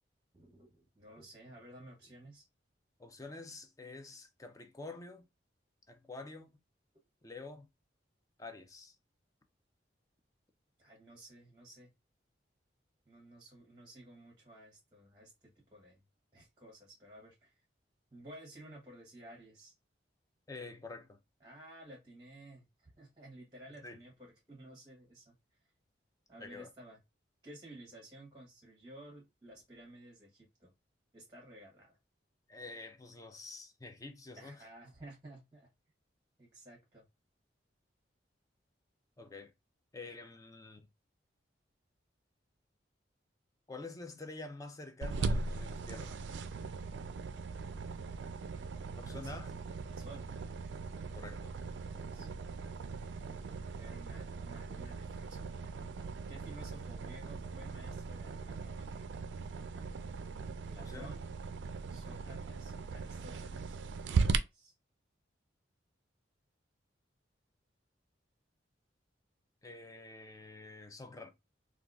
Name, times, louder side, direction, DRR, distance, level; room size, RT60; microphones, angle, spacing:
voice 1, 0.3-2.4 10.8-11.9 13.1-15.3 15.7-16.0 16.3-17.6 18.1-19.7 21.4-25.4 26.3-27.0 27.4-30.7 31.1-32.0 34.4-35.7 36.4-37.1 49.2-49.4 49.9-50.4 51.8-52.3 53.6-55.8 56.3-59.1 60.7-61.3 61.9-63.8 64.0-64.7, right 1 dB, 25° right, 0.8 m, -54 dB
voice 2, 3.0-5.2 5.9-6.5 7.2-7.7 8.4-9.0 20.5-21.2 23.8-24.0 26.4-26.7 32.5-34.7 39.2-39.5 39.9-40.9 43.7-46.1 49.0-49.5 51.2-51.5 60.8-61.1 69.6-71.3, left 3 dB, 20° left, 0.4 m, -47 dB
sound 1, 45.0-64.4, right 4 dB, 75° right, 0.3 m, -39 dB
3.6 x 2.4 x 2.3 m
head